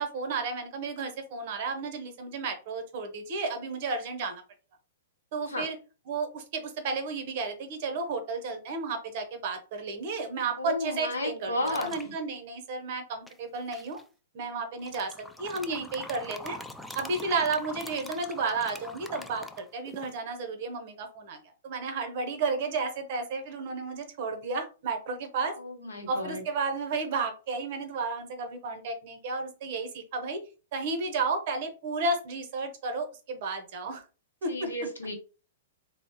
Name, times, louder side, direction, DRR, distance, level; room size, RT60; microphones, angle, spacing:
voice 1, 0.0-4.4 5.3-5.8 6.1-14.0 14.3-16.6 16.9-25.6 26.1-30.4 30.7-34.0 34.4-34.7, right 4 dB, 50° right, 6 dB, 0.8 m, -32 dB
voice 2, 10.6-12.1 25.6-26.4 34.5-35.1, left 1 dB, 85° left, 3 dB, 0.8 m, -33 dB
sound 1, 11.6-12.1 13.3-14.0 14.8-20.1, left 1 dB, 5° left, 0.3 m, -43 dB
3.1 x 2.0 x 2.8 m, 0.34 s
figure-of-eight pair, 110°, 0 cm